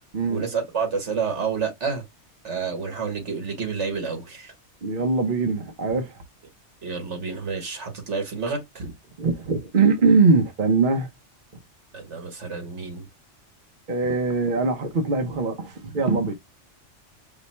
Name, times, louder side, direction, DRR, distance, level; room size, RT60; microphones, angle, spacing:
voice 1, 0.3-2.0 2.4-4.5 6.8-8.8 11.9-13.1, right 5 dB, 70° right, 1.8 m, -29 dB
voice 2, 4.8-6.1 9.2-11.1 13.9-16.3, right 4 dB, 50° right, 0.9 m, -22 dB
5.1 x 2.1 x 4.2 m
omnidirectional pair, 1.2 m